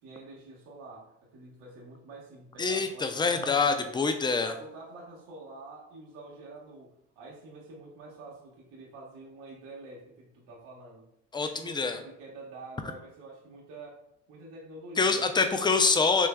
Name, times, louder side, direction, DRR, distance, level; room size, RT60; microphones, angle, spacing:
voice 1, 0.0-3.9 4.4-11.1 11.3-14.0 14.3-15.8, right 2 dB, 70° right, -3 dB, 1.4 m, -47 dB
voice 2, 2.6-4.5 11.3-12.0 15.0-16.3, left 4 dB, 15° left, 7 dB, 0.5 m, -25 dB
6.1 x 3.3 x 2.3 m, 0.76 s
hypercardioid pair, 55°, 34 cm